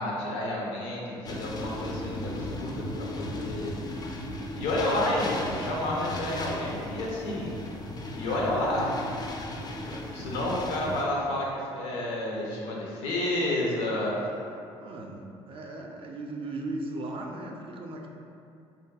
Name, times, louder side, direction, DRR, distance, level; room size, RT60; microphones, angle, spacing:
voice 1, 0.0-3.7 4.6-7.5 8.1-9.1 9.8-14.2, left 1 dB, 80° left, -3 dB, 0.5 m, -30 dB
sound 1, 1.2-11.1, left 1 dB, 30° left, 0.3 m, -36 dB
voice 2, 14.8-18.1, right 2 dB, 40° right, 1 dB, 0.4 m, -38 dB
2.6 x 2.5 x 2.3 m, 2.6 s
hypercardioid pair, 55°, 14 cm